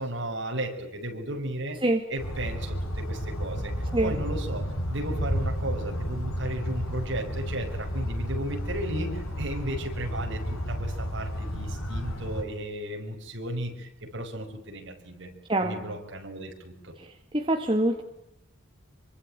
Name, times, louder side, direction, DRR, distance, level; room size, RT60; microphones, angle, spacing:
voice 1, 0.0-3.7 4.0-15.3 15.6-17.0, right 1 dB, 55° right, 4 dB, 5.9 m, -35 dB
sound 1, 2.2-12.4, equal, 90° left, 6.6 m, -32 dB
voice 2, 17.3-18.0, right 1 dB, 25° right, 4 dB, 1.9 m, -24 dB
26.5 x 24.5 x 9.1 m, 0.79 s
head